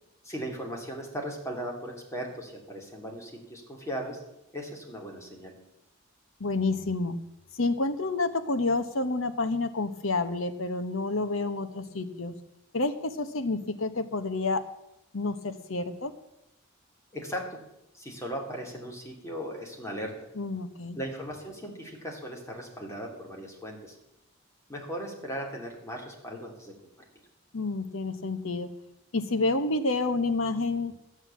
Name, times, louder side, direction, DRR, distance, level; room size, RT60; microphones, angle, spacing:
voice 1, 0.2-4.2 4.5-5.5 17.1-17.6 17.9-20.1 20.9-24.0 24.7-26.7, equal, 15° left, 0 dB, 2.9 m, -37 dB
voice 2, 6.4-7.2 7.5-12.3 12.7-14.6 15.1-16.1 20.4-21.0 27.5-28.7 29.1-30.9, left 3 dB, 75° left, 10 dB, 1.2 m, -29 dB
12.0 x 8.1 x 8.3 m, 0.87 s
head